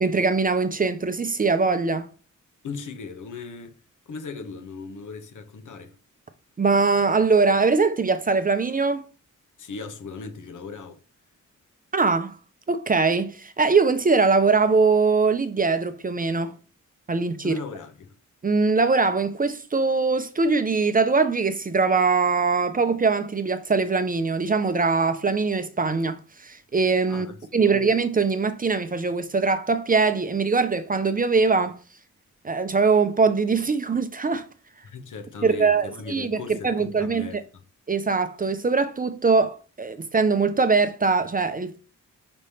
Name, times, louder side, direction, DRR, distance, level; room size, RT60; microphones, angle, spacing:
voice 1, 0.0-2.1 6.6-9.1 11.9-12.4 12.7-16.5 17.1-17.6 18.4-27.3 27.5-31.8 32.4-34.4 35.4-37.3 37.9-41.8, right 4 dB, 25° right, 0.5 m, -22 dB
voice 2, 2.6-3.7 4.1-5.9 9.6-11.0 17.4-18.1 27.1-27.9 34.8-37.6, left 4 dB, 70° left, 1.1 m, -38 dB
5.1 x 3.4 x 5.5 m
wide cardioid pair, 140°, 31 cm